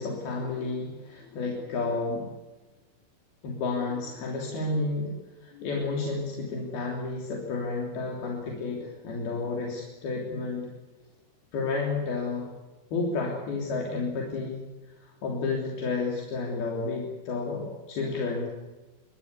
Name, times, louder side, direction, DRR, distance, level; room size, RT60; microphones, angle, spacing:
voice 1, 0.0-2.3 3.4-5.1 5.4-10.7 11.5-12.5 12.9-14.6 15.0-18.5, left 3 dB, 80° left, -1 dB, 5.2 m, -31 dB
26.0 x 21.5 x 8.3 m, 1.2 s
omnidirectional pair, 4.3 m